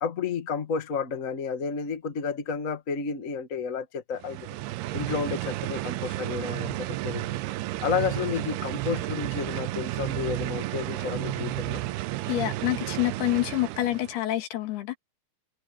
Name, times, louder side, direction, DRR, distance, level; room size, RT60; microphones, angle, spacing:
voice 1, 0.0-4.6 4.9-7.4 7.8-11.8, left 6 dB, 45° left, 1.0 m, -31 dB
sound 1, 4.2-14.2, right 17 dB, 85° right, 2.7 m, -32 dB
voice 2, 12.3-15.0, left 15 dB, 80° left, 3.6 m, -27 dB
omnidirectional pair, 4.7 m